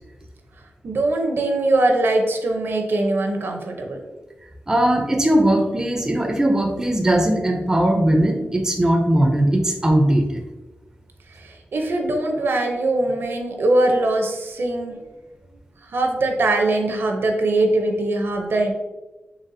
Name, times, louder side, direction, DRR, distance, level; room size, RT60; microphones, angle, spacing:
voice 1, 0.8-4.0 11.3-15.0 15.8-18.7, right 2 dB, 65° right, 3 dB, 0.6 m, -21 dB
voice 2, 4.7-10.4, right 1 dB, 15° right, 3 dB, 0.4 m, -19 dB
4.0 x 3.4 x 2.6 m, 1.1 s
wide cardioid pair, 145°, 4 cm